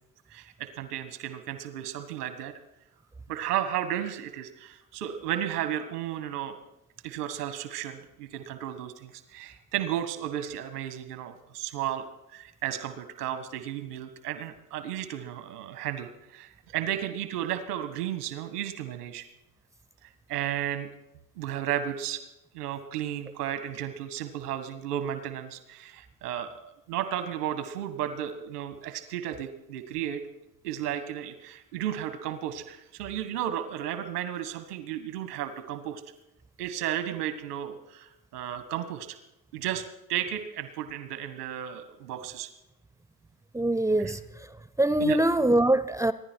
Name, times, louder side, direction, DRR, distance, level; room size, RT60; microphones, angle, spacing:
voice 1, 0.3-2.5 3.3-6.6 7.0-12.0 12.3-19.2 20.3-20.9 21.4-22.2 22.5-30.2 30.6-36.0 36.6-39.2 39.5-39.8 40.1-42.5 45.0-45.2, right 11 dB, 85° right, 9 dB, 1.6 m, -33 dB
voice 2, 43.5-44.2 44.8-46.1, right 1 dB, 5° right, 15 dB, 0.5 m, -23 dB
25.5 x 10.5 x 4.5 m, 0.90 s
supercardioid pair, 95°, 45 cm